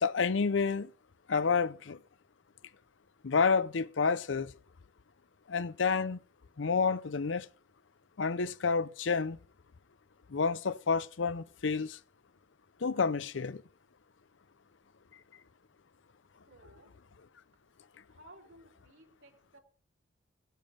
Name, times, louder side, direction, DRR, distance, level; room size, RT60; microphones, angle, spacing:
voice 1, 0.0-0.9 1.3-2.0 3.2-4.5 5.5-6.2 6.6-7.5 8.2-9.4 10.3-12.0 12.8-13.6, left 5 dB, 85° left, 0.6 m, -29 dB
voice 2, 16.5-16.9 18.1-19.6, right 1 dB, 75° right, 3.6 m, -57 dB
17.0 x 9.3 x 5.2 m
head